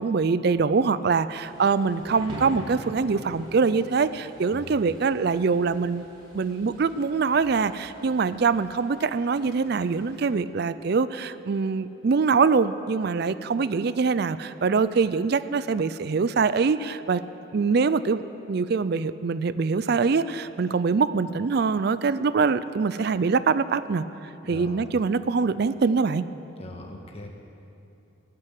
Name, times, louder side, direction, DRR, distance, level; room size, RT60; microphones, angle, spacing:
voice 1, 0.0-6.1 6.3-17.2 17.5-18.2 18.5-24.0 24.5-26.3, right 5 dB, 50° right, 14 dB, 0.4 m, -24 dB
Thunder / Rain, 1.3-10.3, equal, 25° right, 3.2 m, -44 dB
voice 2, 24.4-24.8 26.6-27.3, left 1 dB, 30° left, 1 dB, 1.6 m, -40 dB
19.0 x 7.6 x 9.3 m, 2.9 s
head